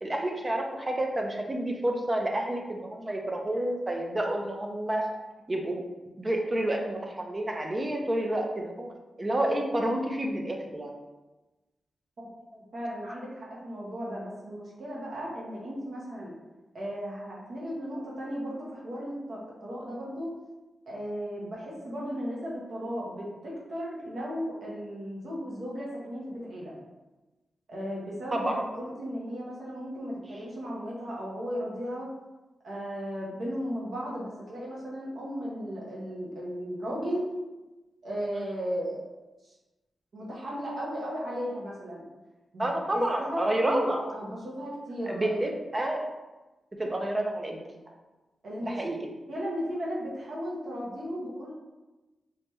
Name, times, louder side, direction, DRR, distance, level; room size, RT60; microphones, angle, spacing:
voice 1, 0.0-5.1 5.5-5.8 6.2-8.9 9.2-10.9 28.3-28.6 42.6-44.1 45.1-46.0 46.8-47.7 48.6-49.1, right 1 dB, 20° right, 1 dB, 0.4 m, -29 dB
voice 2, 12.5-16.3 16.7-20.3 20.9-26.7 27.7-32.1 32.6-37.3 38.0-39.1 40.1-42.0 42.5-45.4 48.4-48.8 49.3-51.5, equal, 55° right, -5 dB, 1.1 m, -35 dB
3.3 x 3.1 x 3.0 m, 1.1 s
wide cardioid pair, 155°, 0 cm